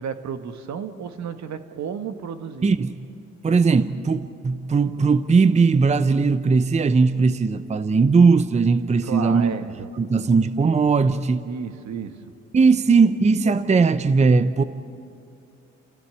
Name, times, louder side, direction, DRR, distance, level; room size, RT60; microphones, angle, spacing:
voice 1, 0.0-2.7 9.0-9.9 11.5-12.2, right 7 dB, 65° right, 1.6 m, -32 dB
voice 2, 2.6-2.9 3.4-9.5 10.0-11.4 12.5-14.6, right 4 dB, 25° right, 0.7 m, -18 dB
29.5 x 16.0 x 9.0 m
cardioid pair, 90°, 30 cm